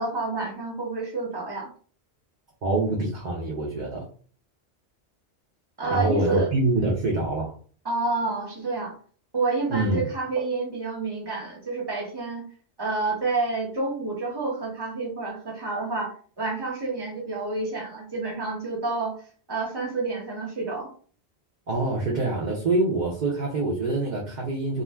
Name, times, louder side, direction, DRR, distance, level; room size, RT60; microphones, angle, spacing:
voice 1, 0.0-1.7 5.8-6.5 7.8-8.9 9.3-12.4 12.8-19.2 19.5-20.9, right 3 dB, 25° right, -2 dB, 0.9 m, -29 dB
voice 2, 2.6-4.1 5.9-7.5 9.7-10.1 21.7-24.8, right 2 dB, 50° right, -3 dB, 0.7 m, -25 dB
2.4 x 2.2 x 3.2 m, 0.43 s
omnidirectional pair, 1.1 m